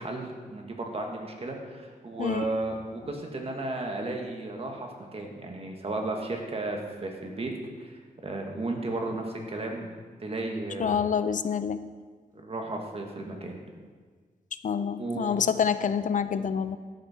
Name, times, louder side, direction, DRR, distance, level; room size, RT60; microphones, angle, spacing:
voice 1, 0.0-7.5 7.8-9.9 10.2-11.0 12.3-13.6 15.0-15.4, right 2 dB, 40° right, 2 dB, 1.8 m, -34 dB
voice 2, 10.8-11.8 14.6-16.8, left 7 dB, 60° left, 12 dB, 0.5 m, -27 dB
12.5 x 8.2 x 4.3 m, 1.5 s
wide cardioid pair, 100°, 15 cm